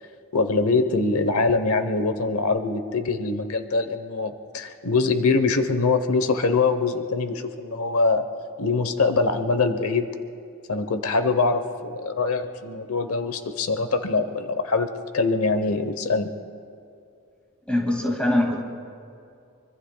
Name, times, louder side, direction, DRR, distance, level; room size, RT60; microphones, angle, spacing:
voice 1, 0.3-8.3 8.6-10.1 10.7-16.3, left 3 dB, 85° left, 9 dB, 0.9 m, -23 dB
voice 2, 17.7-18.6, left 1 dB, 5° left, 0 dB, 2.0 m, -22 dB
24.5 x 24.5 x 2.3 m, 2.5 s
head